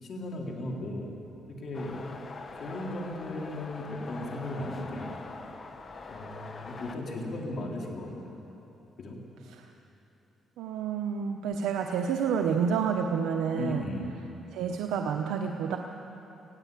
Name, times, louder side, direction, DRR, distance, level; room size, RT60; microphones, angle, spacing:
voice 1, 0.0-1.1 1.6-2.2 2.5-5.1 6.1-8.4 9.0-9.2 13.5-14.0, left 1 dB, 55° left, -1 dB, 3.8 m, -36 dB
sound 1, 1.7-7.0, left 3 dB, 40° left, 1.6 m, -43 dB
voice 2, 10.6-13.8 14.5-15.8, right 7 dB, 90° right, 3 dB, 0.9 m, -29 dB
20.0 x 16.5 x 8.4 m, 3.0 s
cardioid pair, 90°, 0 cm